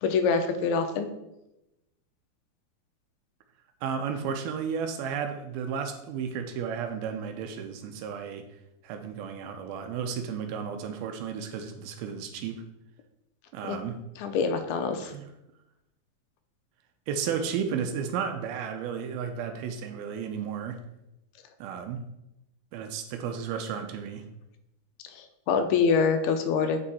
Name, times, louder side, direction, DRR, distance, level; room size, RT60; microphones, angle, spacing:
voice 1, 0.0-1.1 13.6-13.8 14.2-15.1 25.1-26.8, left 5 dB, 85° left, 7 dB, 2.6 m, -25 dB
voice 2, 3.8-8.5 8.8-12.6 13.5-14.0 15.0-15.2 17.1-20.8 21.6-22.1 22.7-24.2, right 7 dB, 80° right, 6 dB, 2.5 m, -33 dB
8.8 x 5.3 x 4.1 m, 0.88 s
omnidirectional pair, 4.5 m